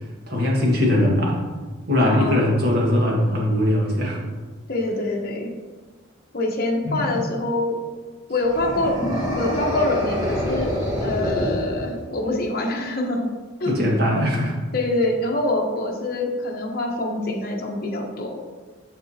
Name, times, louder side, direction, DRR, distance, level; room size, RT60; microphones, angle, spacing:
voice 1, 0.3-1.4 1.9-4.2 6.8-7.2 13.6-14.5, left 1 dB, 50° right, -3 dB, 1.6 m, -20 dB
voice 2, 2.0-2.5 4.7-5.5 6.3-7.8 8.3-10.7 11.0-13.3 13.6-13.7 14.7-18.4, left 2 dB, 45° left, 0 dB, 1.0 m, -25 dB
sound 1, 8.4-12.3, equal, 15° right, 1.3 m, -26 dB
7.0 x 6.8 x 2.8 m, 1.3 s
head